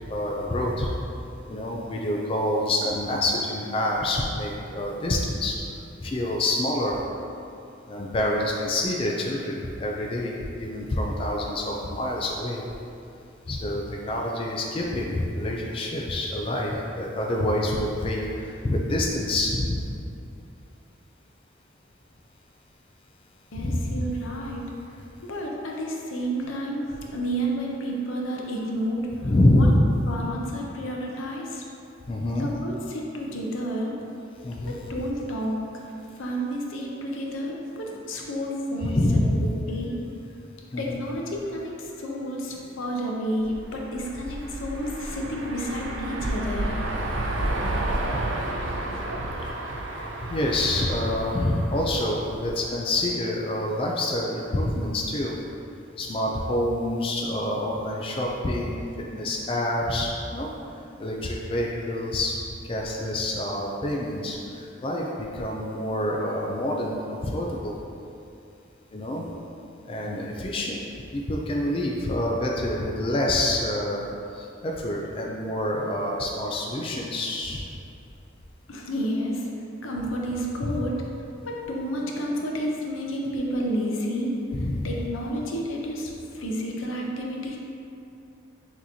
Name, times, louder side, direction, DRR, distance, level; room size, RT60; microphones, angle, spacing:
voice 1, 0.1-0.9 1.5-5.6 6.0-7.0 7.9-12.6 13.5-19.8 23.6-24.1 29.2-29.8 32.1-32.5 34.4-34.8 38.8-39.3 40.7-41.0 50.3-55.3 56.0-58.8 59.1-60.5 61.0-62.4 62.7-64.4 64.8-67.8 68.9-69.2 69.9-70.8 71.1-74.0 74.3-77.7 80.6-80.8 84.5-84.9, left 1 dB, 25° left, -2 dB, 0.3 m, -27 dB
voice 2, 23.5-24.7 25.2-29.1 29.5-29.7 30.1-31.6 32.3-34.0 34.6-35.8 36.2-39.0 39.4-40.0 40.8-46.8 78.7-79.5 79.8-81.0 81.4-87.6, equal, 85° left, -1 dB, 0.6 m, -30 dB
sound 1, 43.4-52.7, right 1 dB, 70° right, 0.5 m, -31 dB
6.1 x 2.9 x 2.7 m, 2.7 s
head